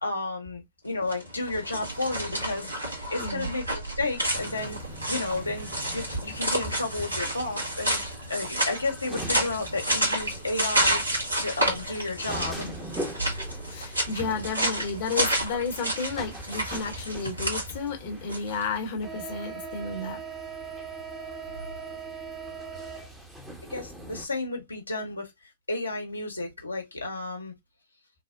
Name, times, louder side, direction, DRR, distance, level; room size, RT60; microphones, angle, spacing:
voice 1, 0.0-4.8 5.1-8.0 8.3-12.7 13.2-13.3 23.7-25.3 25.7-27.5, left 2 dB, 85° left, 0.9 m, -32 dB
sound 1, 1.0-18.6, right 1 dB, 85° right, 1.6 m, -30 dB
sound 2, 4.4-24.3, right 2 dB, 5° right, 0.8 m, -41 dB
voice 2, 13.7-20.2, left 4 dB, 45° left, 0.8 m, -32 dB
3.4 x 2.0 x 2.4 m
figure-of-eight pair, 110°, 0 cm